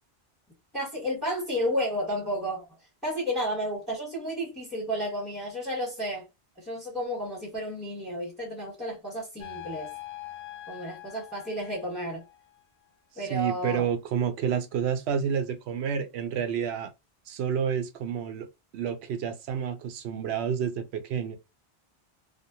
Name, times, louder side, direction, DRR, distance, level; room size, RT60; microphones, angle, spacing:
voice 1, 0.7-2.6 3.0-6.3 6.6-9.9 10.7-12.2 13.2-13.9, equal, ahead, 0.9 m, -32 dB
sound 1, 9.4-12.6, left 14 dB, 55° left, 0.6 m, -43 dB
voice 2, 13.3-16.9 17.3-18.5 18.7-21.4, right 7 dB, 85° right, 0.8 m, -29 dB
2.5 x 2.1 x 2.7 m
omnidirectional pair, 1.1 m